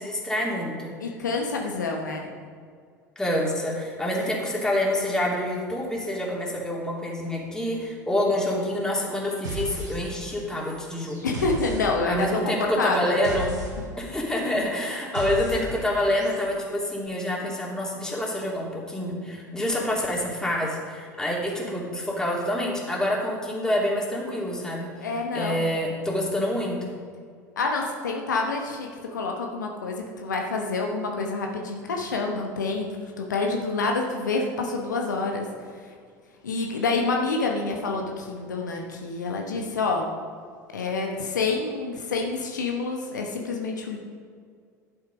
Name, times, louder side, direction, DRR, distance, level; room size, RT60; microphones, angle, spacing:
voice 1, 0.0-0.9 3.2-11.2 12.0-13.5 14.0-24.9 25.3-26.9, left 1 dB, 5° left, -3 dB, 3.0 m, -27 dB
voice 2, 1.0-2.3 11.2-13.2 25.0-25.7 27.6-35.5 36.4-40.1 40.7-44.0, left 3 dB, 80° left, 1 dB, 1.1 m, -27 dB
sound 1, 9.4-10.4 10.6-16.6, right 1 dB, 80° right, 3.2 m, -36 dB
11.0 x 7.8 x 5.2 m, 2.1 s
figure-of-eight pair, 70°, 10 cm